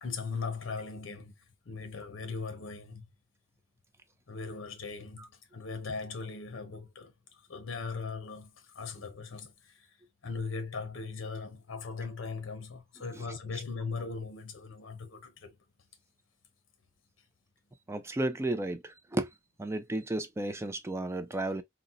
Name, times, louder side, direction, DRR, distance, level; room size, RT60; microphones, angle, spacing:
voice 1, 0.0-1.3 1.7-3.1 4.3-10.0 10.2-15.6, left 4 dB, 80° left, 0.7 m, -39 dB
voice 2, 17.9-19.3 19.6-21.6, right 1 dB, 15° right, 0.4 m, -33 dB
4.0 x 2.0 x 2.4 m
head